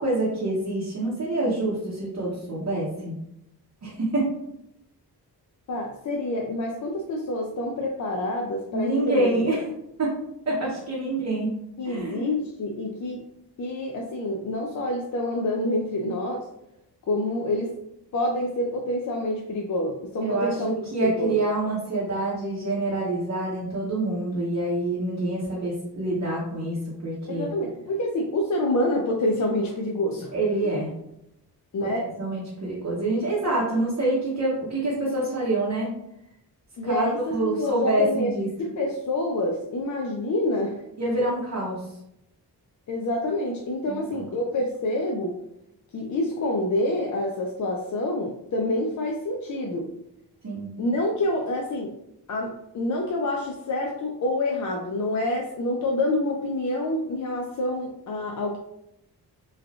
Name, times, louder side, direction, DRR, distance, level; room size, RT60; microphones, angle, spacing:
voice 1, 0.0-3.2 3.8-4.3 8.7-9.7 10.0-10.2 10.5-11.6 11.8-12.3 20.2-26.8 27.0-27.5 30.3-30.9 31.8-31.9 32.2-35.9 36.8-38.5 41.0-41.9 43.9-44.2 50.4-50.7, right 2 dB, 45° right, -7 dB, 0.8 m, -26 dB
voice 2, 5.7-9.6 11.8-13.2 13.6-16.5 17.1-17.7 18.1-20.7 21.0-21.4 27.3-30.3 30.6-30.8 31.7-32.1 36.8-40.8 42.9-45.4 45.9-49.9 50.8-51.9 52.3-58.6, left 1 dB, 50° left, 1 dB, 0.4 m, -27 dB
3.2 x 2.3 x 2.4 m, 0.82 s
cardioid pair, 85°, 40 cm